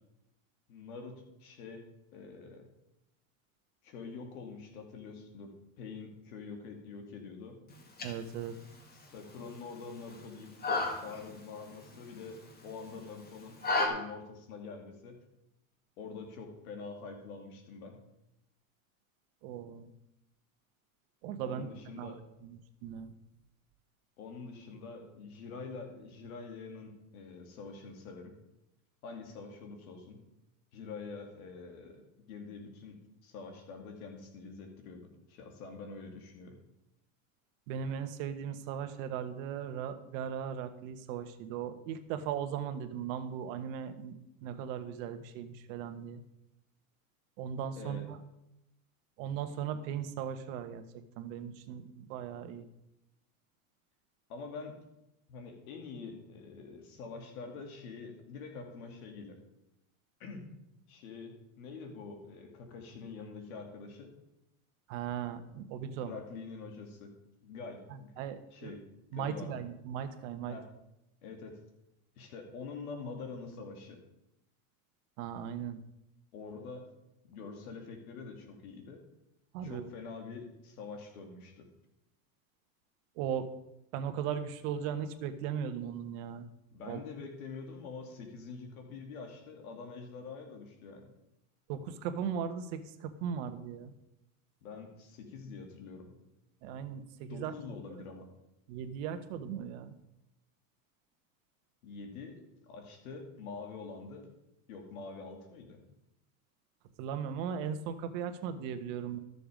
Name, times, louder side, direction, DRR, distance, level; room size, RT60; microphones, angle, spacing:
voice 1, 0.7-1.8 2.1-2.7 3.8-7.6 8.9-10.5 11.0-13.6 13.8-15.2 16.0-18.0 21.4-22.2 24.2-28.3 29.0-30.2 30.7-32.0 32.3-36.6 47.8-48.0 54.3-54.8 55.3-59.4 60.2-60.5 60.9-64.1 66.0-67.1 67.4-68.1 68.5-68.8 69.1-69.6 70.5-70.6 71.2-71.6 72.2-74.0 76.3-76.9 77.2-79.0 79.6-81.7 86.7-91.1 94.6-96.1 97.3-98.3 101.8-104.2 104.7-105.8, left 4 dB, 80° left, 4 dB, 2.7 m, -45 dB
sound 1, 7.7-13.9, left 3 dB, 20° left, 1.8 m, -37 dB
voice 2, 8.0-8.6 19.4-19.9 21.2-21.7 21.9-22.2 22.4-23.1 37.7-46.2 47.4-48.2 49.2-50.8 51.2-52.7 64.9-66.1 67.9-68.8 69.1-70.6 75.2-75.8 79.5-79.9 83.2-83.5 83.9-86.5 86.9-87.0 91.7-93.9 96.6-97.5 98.7-99.9 107.0-109.2, right 8 dB, 60° right, 9 dB, 1.2 m, -38 dB
13.5 x 6.9 x 5.1 m, 0.88 s
supercardioid pair, 130°, 43 cm